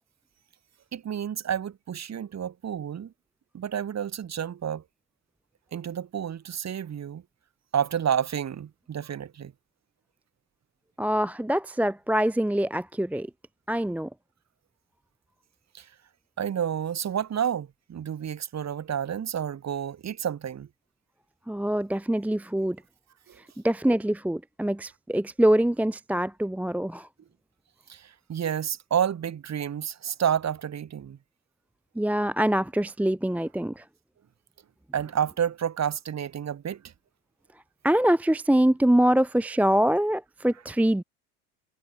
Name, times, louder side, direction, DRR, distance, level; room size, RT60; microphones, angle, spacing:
voice 1, 0.9-3.1 3.5-4.8 5.7-7.2 7.7-9.5 15.7-15.9 16.4-20.7 23.3-23.4 27.9-31.2 34.9-36.8, right 9 dB, 35° right, 6.8 m, -30 dB
voice 2, 11.0-13.3 13.7-14.1 21.5-22.8 23.6-27.1 32.0-33.8 37.8-41.0, right 1 dB, 5° right, 1.0 m, -24 dB
hypercardioid pair, 80°, 45 cm